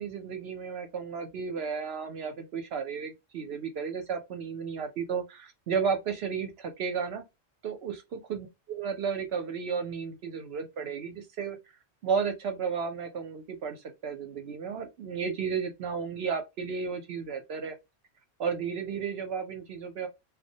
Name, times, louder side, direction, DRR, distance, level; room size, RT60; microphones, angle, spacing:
voice 1, 0.0-7.2 7.6-11.6 12.0-17.8 18.4-20.1, right 6 dB, 65° right, 0.7 m, -33 dB
2.2 x 2.1 x 2.6 m
omnidirectional pair, 1.3 m